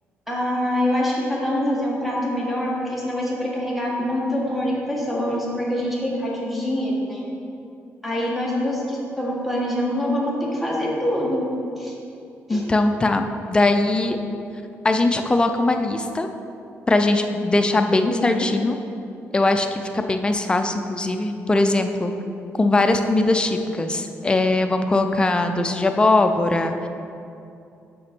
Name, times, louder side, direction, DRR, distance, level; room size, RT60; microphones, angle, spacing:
voice 1, 0.3-7.2 8.0-11.4 11.8-11.9 12.5-12.6 18.0-18.4, left 1 dB, ahead, -4 dB, 1.6 m, -25 dB
voice 2, 12.5-14.2 14.8-16.3 16.9-18.8 19.3-22.1 22.6-26.9, left 2 dB, 20° left, 6 dB, 0.5 m, -20 dB
6.3 x 6.0 x 4.5 m, 2.6 s
cardioid pair, 105°, 5 cm